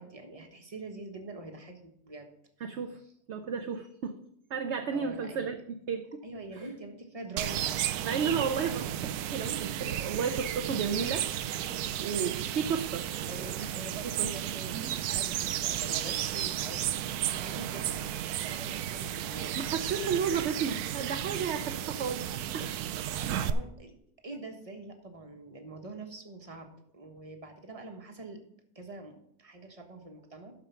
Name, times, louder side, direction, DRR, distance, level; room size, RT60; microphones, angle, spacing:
voice 1, 0.0-2.3 4.9-5.6 6.2-8.1 13.0-20.0 23.1-23.9 24.2-28.4 28.7-30.5, right 2 dB, 25° right, 4 dB, 1.4 m, -45 dB
voice 2, 2.6-3.0 3.3-4.2 4.5-5.6 5.9-6.2 6.5-6.7 8.0-11.5 12.0-13.7 14.2-14.3 19.6-22.2 22.5-22.7 24.3-24.4, right 6 dB, 55° right, 7 dB, 0.9 m, -33 dB
sound 1, 7.4-23.5, right 11 dB, 85° right, 1.1 m, -33 dB
12.5 x 5.2 x 5.8 m, 0.72 s
omnidirectional pair, 1.6 m